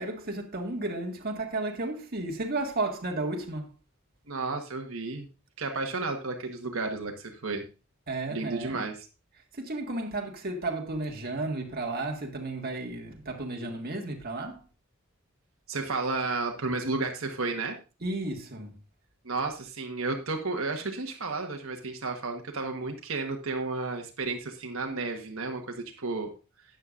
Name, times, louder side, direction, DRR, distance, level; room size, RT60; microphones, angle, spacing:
voice 1, 0.0-3.7 8.1-8.9 9.5-14.6 18.0-18.8, right 2 dB, 50° right, 1.7 m, -33 dB
voice 2, 4.3-5.3 5.6-7.6 8.3-9.0 15.7-17.8 19.2-26.3, right 3 dB, 85° right, 1.3 m, -32 dB
12.5 x 9.0 x 2.5 m
head